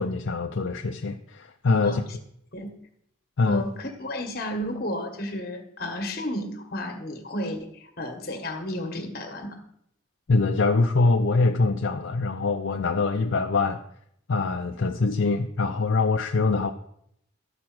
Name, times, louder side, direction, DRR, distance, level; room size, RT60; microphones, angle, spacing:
voice 1, 0.0-2.0 3.4-3.6 10.3-13.8 14.3-16.7, left 3 dB, 65° left, 4 dB, 0.5 m, -24 dB
voice 2, 3.5-9.6, left 1 dB, 45° left, 4 dB, 1.5 m, -32 dB
13.0 x 4.8 x 6.1 m, 0.73 s
head